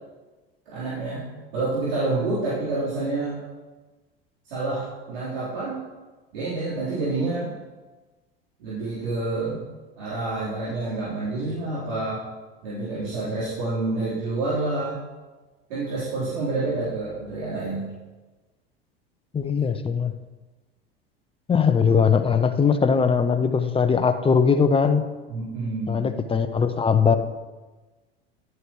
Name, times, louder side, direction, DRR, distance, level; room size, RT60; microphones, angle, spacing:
voice 1, 0.7-1.2 1.5-3.4 4.5-5.8 6.3-7.5 8.6-9.6 10.0-12.2 12.6-15.0 15.7-17.9 25.3-26.1, right 2 dB, 70° right, -10 dB, 4.0 m, -28 dB
voice 2, 19.3-20.1 21.5-25.0 25.9-27.2, left 6 dB, 20° left, 9 dB, 0.8 m, -20 dB
12.0 x 11.0 x 3.2 m, 1.2 s
hypercardioid pair, 80°, 30 cm